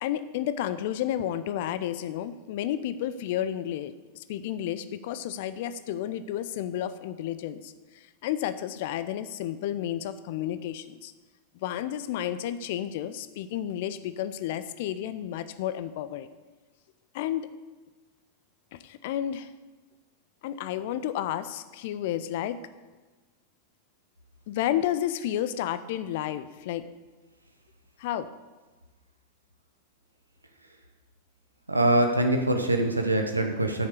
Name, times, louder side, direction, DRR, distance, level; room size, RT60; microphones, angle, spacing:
voice 1, 0.0-11.1 11.5-16.3 17.1-17.5 18.7-19.5 20.4-22.6 24.5-26.9 28.0-28.3, left 11 dB, 50° left, 14 dB, 0.5 m, -31 dB
voice 2, 31.7-33.9, right 1 dB, 85° right, 4 dB, 0.9 m, -24 dB
8.6 x 6.6 x 6.6 m, 1.3 s
figure-of-eight pair, 90°, 0 cm